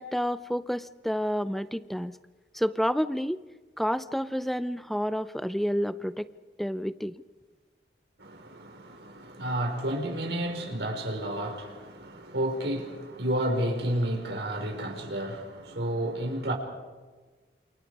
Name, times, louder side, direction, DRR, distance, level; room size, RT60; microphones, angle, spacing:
voice 1, 0.0-2.2 2.5-3.4 3.8-6.3 6.6-7.1, equal, ahead, 0.6 m, -29 dB
voice 2, 8.2-16.5, right 1 dB, 75° right, 5.0 m, -31 dB
28.5 x 28.5 x 4.9 m
head